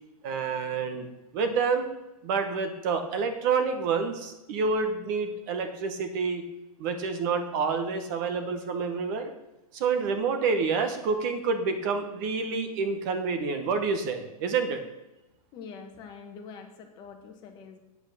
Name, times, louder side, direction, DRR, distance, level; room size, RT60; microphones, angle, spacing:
voice 1, 0.2-1.1 1.3-1.9 2.2-6.4 6.8-9.3 9.7-14.8, right 5 dB, 30° right, 7 dB, 1.1 m, -28 dB
voice 2, 15.5-17.8, left 5 dB, 20° left, 4 dB, 1.2 m, -45 dB
8.4 x 8.1 x 6.7 m, 0.97 s
supercardioid pair, 170°, 19 cm